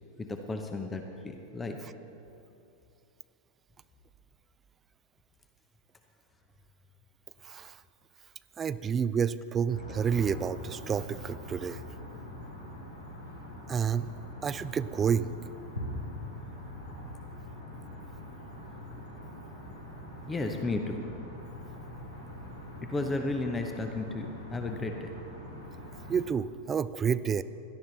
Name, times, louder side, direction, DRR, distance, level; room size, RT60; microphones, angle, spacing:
voice 1, 0.2-1.8 20.3-21.1 22.8-25.1, left 2 dB, 15° left, 5 dB, 0.9 m, -33 dB
voice 2, 7.4-7.8 8.6-11.8 13.7-14.1 14.4-15.3 26.1-27.4, right 7 dB, 20° right, 15 dB, 0.4 m, -29 dB
sound 1, 9.7-26.2, left 1 dB, 80° left, 3.8 m, -43 dB
17.5 x 12.0 x 4.0 m, 3.0 s
figure-of-eight pair, 90°, 0 cm